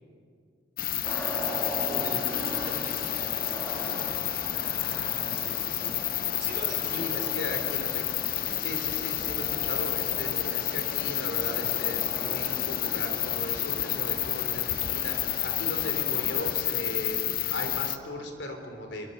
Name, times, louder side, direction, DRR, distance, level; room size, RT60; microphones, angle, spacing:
sound 1, 0.8-18.0, left 13 dB, 50° left, 0.8 m, -30 dB
sound 2, 1.0-16.5, equal, 10° left, 3.1 m, -40 dB
voice 1, 1.8-3.3 6.4-7.2, right 1 dB, 50° right, 0 dB, 5.8 m, -40 dB
voice 2, 4.5-5.9 6.9-8.0 8.6-17.2 17.5-19.1, left 1 dB, 75° left, 4 dB, 3.8 m, -37 dB
27.0 x 23.0 x 7.0 m, 2.3 s
head